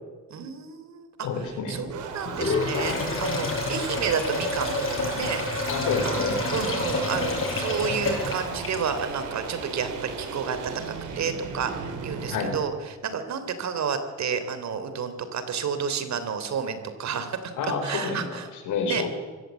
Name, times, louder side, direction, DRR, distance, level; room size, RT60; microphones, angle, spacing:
voice 1, 0.3-5.4 6.0-10.6 11.1-18.5 18.8-19.0, right 6 dB, 65° right, 10 dB, 3.4 m, -31 dB
voice 2, 1.2-1.8 5.7-6.3 12.3-12.5 17.6-19.1, left 5 dB, 85° left, 5 dB, 5.4 m, -29 dB
sound 1, 1.3-12.6, right 5 dB, 85° right, 4.0 m, -36 dB
Sink (filling or washing), 2.2-9.1, left 3 dB, 45° left, 7.6 m, -29 dB
25.0 x 16.0 x 8.4 m, 1.4 s
cardioid pair, 90°, 30 cm